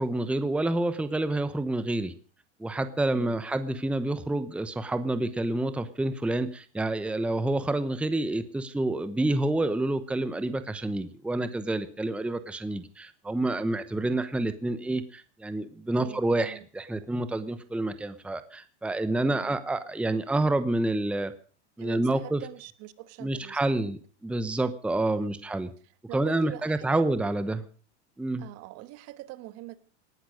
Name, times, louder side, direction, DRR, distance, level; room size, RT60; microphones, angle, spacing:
voice 1, 0.0-2.1 2.6-21.3 21.8-22.4 23.2-25.7 26.1-27.6 28.2-28.5, right 2 dB, 5° right, 0.9 m, -28 dB
voice 2, 3.1-3.4 16.0-16.7 19.2-19.6 21.8-23.9 25.1-25.3 26.1-27.1 28.4-29.8, right 16 dB, 45° right, 1.4 m, -43 dB
19.0 x 11.5 x 6.3 m
supercardioid pair, 130°, 35 cm